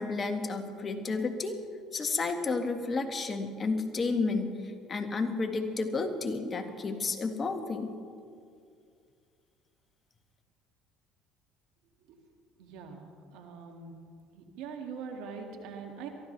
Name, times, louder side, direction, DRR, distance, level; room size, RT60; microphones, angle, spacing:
voice 1, 0.0-1.6 1.9-7.9, left 3 dB, 35° left, 6 dB, 1.7 m, -31 dB
voice 2, 12.6-13.1 13.3-13.9 14.3-16.1, right 5 dB, 75° right, 3 dB, 2.1 m, -42 dB
23.0 x 15.0 x 3.3 m, 2.3 s
supercardioid pair, 80°, 0 cm